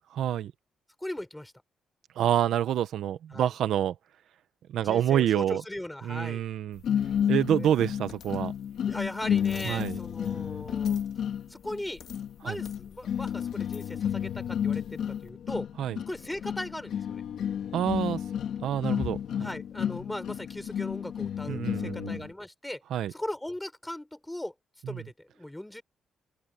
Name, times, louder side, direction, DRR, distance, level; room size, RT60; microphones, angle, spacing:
voice 1, 0.1-0.5 2.2-3.9 4.7-5.6 6.0-6.8 7.3-8.5 9.6-10.0 12.4-12.6 15.8-16.0 17.7-18.2 18.6-19.5 21.5-22.2 22.9-23.1 24.9-25.0, right 10 dB, 80° right, 0.9 m, -27 dB
voice 2, 1.0-1.5 3.3-3.5 4.8-6.4 7.6-7.7 8.9-11.0 11.5-12.0 12.4-15.7 16.1-17.2 19.4-22.8 23.1-24.5 24.9-25.8, left 1 dB, 5° left, 6.2 m, -38 dB
sound 1, 6.8-22.3, left 9 dB, 65° left, 1.9 m, -31 dB
open air
wide cardioid pair, 170°, 0 cm